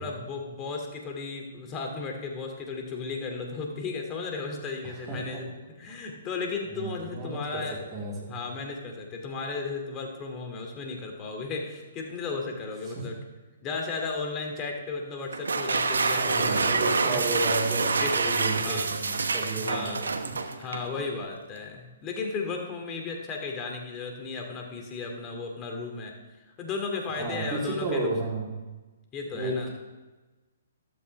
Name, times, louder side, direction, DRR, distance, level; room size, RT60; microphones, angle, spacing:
voice 1, 0.0-5.5 5.8-7.8 8.3-13.2 13.6-16.7 17.1-17.2 18.0-18.2 18.6-18.9 19.5-20.0 20.6-26.1 26.6-28.1 29.1-29.7, left 4 dB, 25° left, 2 dB, 2.7 m, -35 dB
voice 2, 4.8-5.4 6.7-7.6 7.9-8.3 12.9-13.1 16.2-20.4 27.2-28.6 29.3-29.7, right 2 dB, 25° right, -4 dB, 4.1 m, -32 dB
sound 1, 15.3-20.9, right 4 dB, 80° right, 1.0 m, -27 dB
14.0 x 13.0 x 3.5 m, 1.2 s
hypercardioid pair, 130°, 0 cm